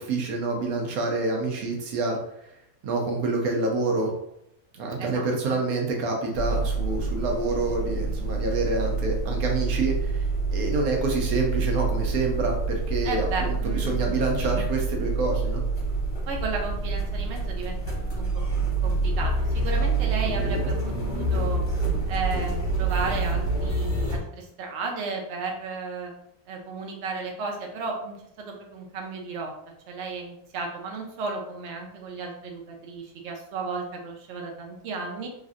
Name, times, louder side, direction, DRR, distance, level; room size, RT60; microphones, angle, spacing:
voice 1, 0.0-2.5 2.8-4.1 4.7-10.2 10.5-15.6 20.2-20.7, right 3 dB, 80° right, 1 dB, 1.2 m, -27 dB
voice 2, 5.0-5.6 13.0-14.2 16.3-18.4 18.8-21.6 22.1-26.1 26.5-29.5 29.9-35.3, right 4 dB, 60° right, 1 dB, 0.8 m, -34 dB
sound 1, 6.3-24.2, right 3 dB, 55° left, 1.2 m, -27 dB
3.2 x 2.6 x 2.4 m, 0.78 s
omnidirectional pair, 1.5 m